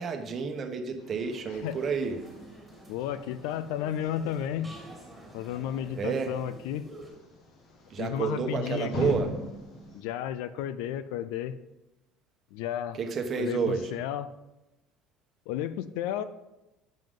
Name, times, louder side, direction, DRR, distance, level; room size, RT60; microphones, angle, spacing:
voice 1, 0.0-2.2 5.9-6.3 7.9-9.3 12.9-13.9, right 5 dB, 30° right, 5 dB, 1.1 m, -30 dB
sound 1, 1.0-10.0, left 2 dB, 50° left, 1.9 m, -42 dB
sound 2, 1.5-7.1, right 1 dB, 5° right, 2.8 m, -49 dB
voice 2, 2.9-4.7 5.3-6.9 8.0-9.2 9.9-11.6 12.5-13.0 13.3-14.3 15.5-16.2, left 10 dB, 85° left, 14 dB, 0.5 m, -33 dB
10.5 x 7.6 x 3.8 m, 0.97 s
cardioid pair, 165°, 0 cm